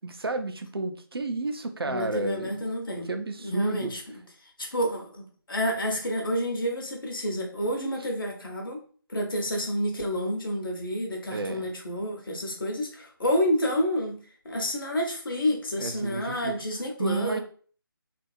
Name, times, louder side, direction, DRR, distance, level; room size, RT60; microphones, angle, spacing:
voice 1, 0.0-2.5 3.1-3.9 11.3-11.7 15.8-16.6 17.0-17.4, right 3 dB, 85° right, 7 dB, 0.5 m, -31 dB
voice 2, 1.8-3.1 3.4-4.2 4.6-8.8 9.1-14.2 14.4-17.4, equal, 65° left, 1 dB, 1.0 m, -29 dB
2.8 x 2.6 x 2.4 m, 0.43 s
figure-of-eight pair, 155°, 12 cm